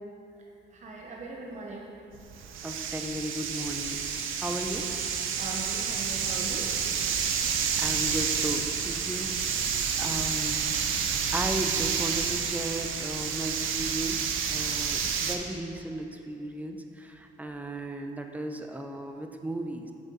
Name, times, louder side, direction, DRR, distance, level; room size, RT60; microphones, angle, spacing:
voice 1, 0.7-1.9 5.4-6.7, right 2 dB, 35° right, -2 dB, 0.9 m, -40 dB
sound 1, 2.1-15.4, right 7 dB, 85° right, 0.7 m, -29 dB
voice 2, 2.6-4.0 4.4-4.9 7.4-9.3 10.0-10.8 11.3-19.9, right 1 dB, 5° right, 4 dB, 0.7 m, -35 dB
8.8 x 6.5 x 3.9 m, 2.8 s
cardioid pair, 90°, 20 cm